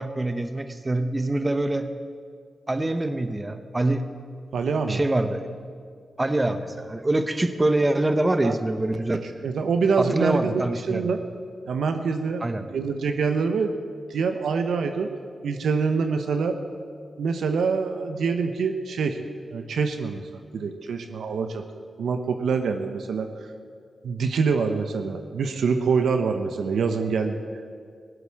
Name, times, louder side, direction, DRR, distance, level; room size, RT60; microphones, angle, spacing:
voice 1, 0.0-1.9 2.7-4.1 4.9-5.5 6.2-9.2 10.0-11.1 12.4-12.6, right 2 dB, 30° right, 9 dB, 1.0 m, -25 dB
voice 2, 4.5-5.0 8.4-8.5 9.4-11.2 11.7-13.7 14.1-15.1 15.4-16.6 17.2-19.2 19.5-21.7 22.0-23.3 24.0-27.5, right 5 dB, 80° right, 6 dB, 0.8 m, -25 dB
17.0 x 8.1 x 7.4 m, 2.1 s
supercardioid pair, 40°, 0 cm